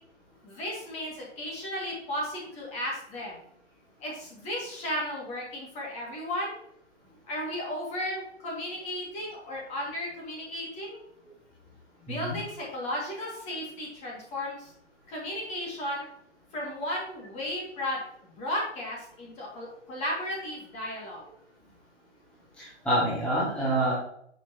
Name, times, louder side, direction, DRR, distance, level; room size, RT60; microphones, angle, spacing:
voice 1, 0.4-3.4 4.0-6.6 7.3-11.0 12.0-14.7 15.1-16.1 16.5-18.0 18.3-21.2, left 1 dB, 20° left, -3 dB, 2.2 m, -34 dB
voice 2, 12.1-12.4 22.6-23.9, right 1 dB, 5° left, -8 dB, 2.0 m, -27 dB
9.5 x 6.2 x 2.9 m, 0.71 s
figure-of-eight pair, 125°, 35 cm